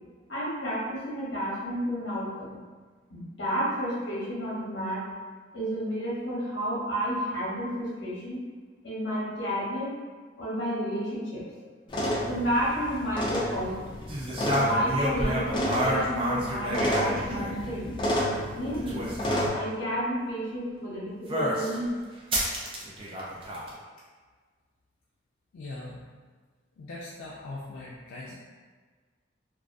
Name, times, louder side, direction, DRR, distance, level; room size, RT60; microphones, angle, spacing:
voice 1, 0.3-2.6 3.1-5.1 5.5-8.4 8.8-10.0 10.4-11.7 12.2-13.9 14.5-18.0 18.5-19.1 19.5-21.9, equal, 65° left, -6 dB, 0.9 m, -31 dB
sound 1, 11.9-19.5, equal, 25° left, 0.4 m, -31 dB
sound 2, 14.1-17.7 18.6-19.5 21.3-21.8 22.3-23.7, equal, 30° right, 0.4 m, -29 dB
voice 2, 25.5-26.0 26.8-28.3, left 2 dB, 90° left, -5 dB, 0.3 m, -40 dB
2.4 x 2.3 x 2.5 m, 1.5 s
head